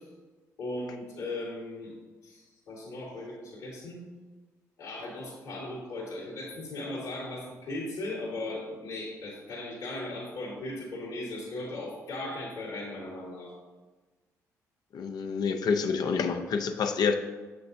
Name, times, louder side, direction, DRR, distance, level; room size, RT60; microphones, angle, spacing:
voice 1, 0.6-1.9 2.2-4.0 4.8-13.5, left 2 dB, 80° left, -8 dB, 2.1 m, -37 dB
voice 2, 14.9-17.1, left 5 dB, 60° left, 6 dB, 0.5 m, -28 dB
6.8 x 6.7 x 2.7 m, 1.3 s
hypercardioid pair, 45°, 8 cm